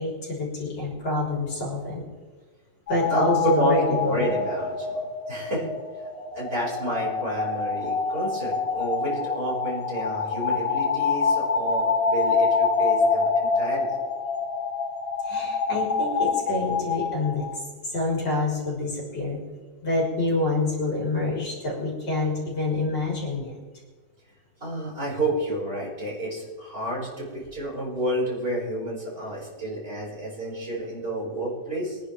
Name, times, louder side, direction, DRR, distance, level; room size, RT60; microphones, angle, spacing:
voice 1, 0.0-2.0 2.9-4.3 15.2-19.4 19.8-23.5, left 2 dB, 85° left, -3 dB, 4.7 m, -27 dB
sound 1, 2.9-17.6, left 5 dB, 40° left, 1.6 m, -26 dB
voice 2, 3.1-5.7 6.3-13.9 24.6-32.0, right 1 dB, 30° right, -6 dB, 5.9 m, -30 dB
24.0 x 10.5 x 3.5 m, 1.3 s
omnidirectional pair, 1.9 m